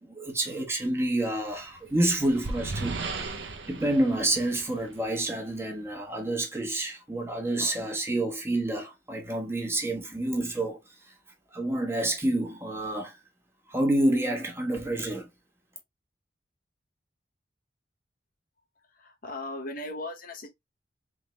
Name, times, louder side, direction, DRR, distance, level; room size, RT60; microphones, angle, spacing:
voice 1, 0.0-3.0 3.3-10.8 11.0-11.1 11.5-13.2 13.7-15.3, right 1 dB, 15° right, 1.2 m, -28 dB
sound 1, 1.6-5.3, right 3 dB, 80° right, 0.8 m, -36 dB
voice 2, 19.0-20.5, left 1 dB, 55° left, 1.0 m, -37 dB
3.7 x 3.5 x 3.1 m
head